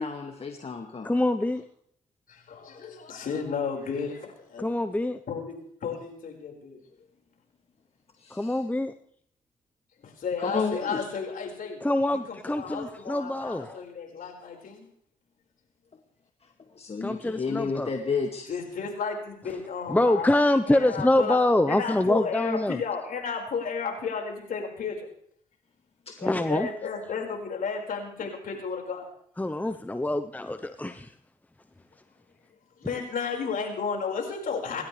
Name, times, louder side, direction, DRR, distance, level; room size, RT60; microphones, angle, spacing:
voice 1, 0.0-1.2 8.2-8.6 10.4-11.0 16.4-16.5 16.7-18.5 26.1-26.2, left 4 dB, 40° left, 3 dB, 2.1 m, -31 dB
voice 2, 1.0-1.6 4.6-5.2 8.3-8.9 11.8-13.8 17.0-17.9 19.9-22.8 26.2-26.7 29.4-31.1, left 1 dB, 10° left, 9 dB, 0.9 m, -25 dB
voice 3, 2.3-4.6 5.3-6.8 10.0-11.8 12.3-14.9 18.5-20.3 20.6-21.4 21.7-25.0 26.2-29.1 32.8-34.8, left 5 dB, 55° left, 1 dB, 5.2 m, -33 dB
28.0 x 12.5 x 3.4 m, 0.66 s
hypercardioid pair, 50°, 17 cm